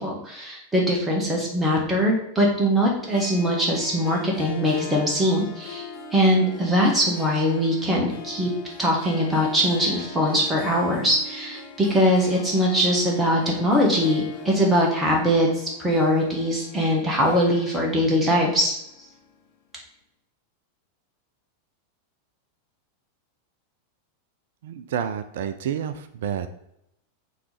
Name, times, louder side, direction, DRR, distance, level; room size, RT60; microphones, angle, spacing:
voice 1, 0.0-5.9 6.1-8.5 8.8-18.8, equal, 10° right, -2 dB, 1.3 m, -22 dB
Harp, 3.0-19.5, left 4 dB, 50° left, 1.1 m, -42 dB
voice 2, 24.6-26.5, right 9 dB, 55° right, 10 dB, 0.4 m, -29 dB
5.9 x 3.2 x 5.1 m, 0.79 s
figure-of-eight pair, 90°, 0 cm